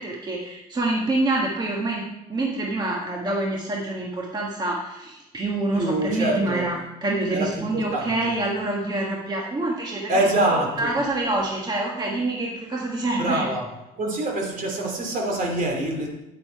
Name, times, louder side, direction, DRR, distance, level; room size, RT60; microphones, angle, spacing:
voice 1, 0.0-2.0 2.3-6.8 7.0-13.5, right 2 dB, 25° right, -2 dB, 1.5 m, -26 dB
voice 2, 5.7-6.7 7.3-8.3 10.1-10.9 13.2-13.7 14.0-16.1, right 1 dB, 55° right, 1 dB, 2.9 m, -25 dB
9.4 x 8.5 x 4.6 m, 0.93 s
cardioid pair, 110°, 17 cm